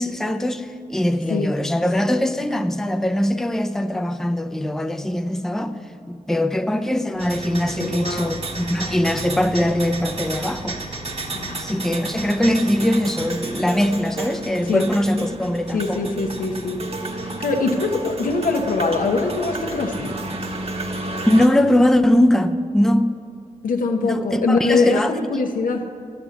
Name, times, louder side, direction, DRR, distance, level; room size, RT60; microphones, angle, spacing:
voice 1, 0.0-5.8 6.1-10.8 11.6-16.1 21.3-23.1 24.0-25.1, left 1 dB, 5° left, 0.5 m, -21 dB
sound 1, 7.2-21.5, right 2 dB, 45° right, 1.2 m, -31 dB
voice 2, 7.8-8.3 11.3-11.6 14.6-14.9 15.7-16.8 17.2-20.2 23.6-25.9, left 3 dB, 85° left, 1.0 m, -23 dB
11.0 x 7.1 x 7.1 m
cardioid pair, 65°, 14 cm